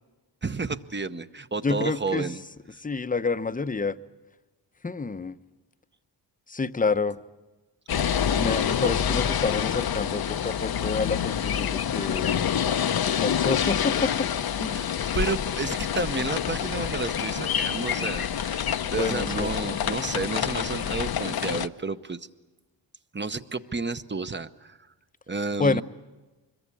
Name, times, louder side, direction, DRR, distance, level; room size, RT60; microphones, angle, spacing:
voice 1, 0.4-2.4 14.7-14.9 15.1-22.3 23.1-24.8 25.3-25.8, right 3 dB, 25° right, 11 dB, 0.9 m, -31 dB
voice 2, 1.6-2.3 2.8-4.0 4.8-5.4 6.5-7.2 8.3-12.4 13.1-14.3 14.6-14.8 19.0-19.8 25.6-25.8, left 4 dB, 20° left, 12 dB, 0.7 m, -28 dB
sound 1, 7.9-21.7, left 8 dB, 55° left, 0.7 m, -27 dB
25.0 x 22.0 x 8.4 m, 1.2 s
wide cardioid pair, 90°, 43 cm